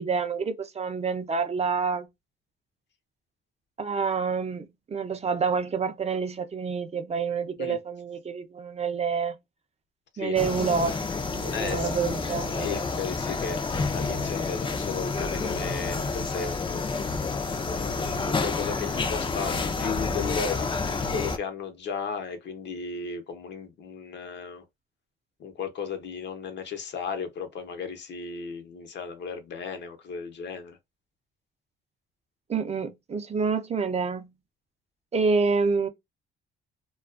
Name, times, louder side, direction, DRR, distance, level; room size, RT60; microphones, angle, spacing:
voice 1, 0.0-2.1 3.8-9.4 10.2-12.9 32.5-34.3 35.1-35.9, right 5 dB, 30° right, 0.6 m, -28 dB
sound 1, 10.4-21.4, left 4 dB, 25° left, 0.5 m, -29 dB
voice 2, 11.5-12.0 12.5-16.8 17.7-24.6 25.4-30.8, left 5 dB, 65° left, 0.8 m, -35 dB
2.4 x 2.3 x 2.3 m
cardioid pair, 90°, 20 cm